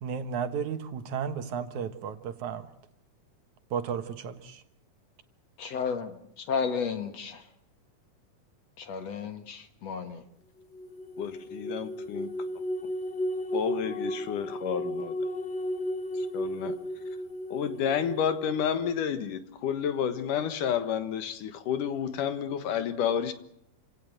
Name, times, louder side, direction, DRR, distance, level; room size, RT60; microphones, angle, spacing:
voice 1, 0.0-2.7 3.7-4.6, right 7 dB, 65° right, 2.7 m, -33 dB
voice 2, 5.6-6.1 6.5-7.4 8.8-10.2, left 6 dB, 55° left, 2.5 m, -32 dB
sound 1, 10.7-18.5, equal, 25° left, 1.6 m, -34 dB
voice 3, 11.2-12.3 13.5-15.1 16.1-16.8 17.5-23.3, left 8 dB, 75° left, 2.9 m, -30 dB
28.5 x 17.5 x 7.8 m
omnidirectional pair, 3.8 m